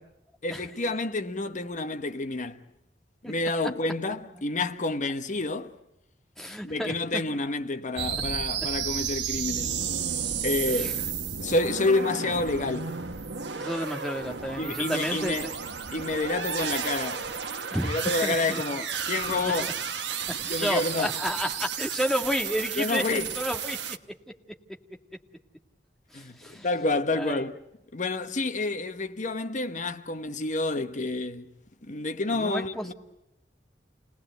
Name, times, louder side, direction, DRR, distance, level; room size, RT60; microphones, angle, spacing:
voice 1, 0.4-2.6 3.2-5.7 6.6-9.8 10.4-11.0 11.4-12.9 14.6-15.5 15.9-17.2 17.8-20.2 20.5-21.1 22.8-23.3 26.1-27.6 27.9-31.5 31.9-32.9, left 2 dB, 45° left, 1.2 m, -29 dB
voice 2, 6.4-6.9 10.7-10.9 13.4-15.5 17.7-18.6 20.5-23.8 26.1-26.7 27.2-27.4 32.3-32.9, equal, ahead, 1.9 m, -31 dB
sound 1, 8.0-24.0, right 7 dB, 80° right, 1.2 m, -32 dB
29.5 x 19.5 x 8.0 m
head